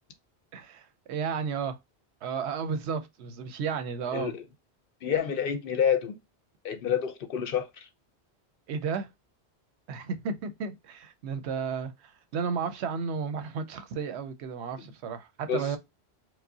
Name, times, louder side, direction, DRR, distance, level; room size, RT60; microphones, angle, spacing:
voice 1, 0.5-1.8 2.2-4.3 8.7-9.1 9.9-15.8, right 6 dB, 80° right, 0.9 m, -33 dB
voice 2, 4.1-4.4 5.0-6.2 6.6-7.9 15.5-15.7, left 8 dB, 60° left, 0.7 m, -28 dB
4.7 x 2.1 x 2.7 m
omnidirectional pair, 1.1 m